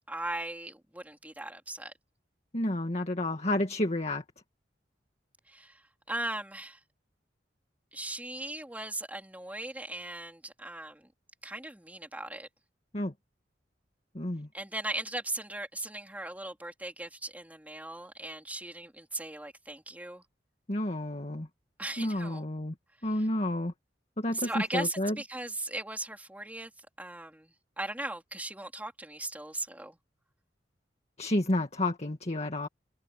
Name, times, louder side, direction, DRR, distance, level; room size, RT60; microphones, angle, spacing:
voice 1, 0.1-1.9 5.5-6.8 7.9-11.1 11.4-12.5 14.5-20.2 21.8-22.4 23.1-23.3 24.3-30.0, right 1 dB, 10° right, 3.9 m, -38 dB
voice 2, 2.5-4.2 12.9-13.1 14.1-14.5 20.7-21.5 22.0-22.7 23.0-23.7 24.2-25.2 31.2-32.7, left 1 dB, 40° left, 1.9 m, -30 dB
head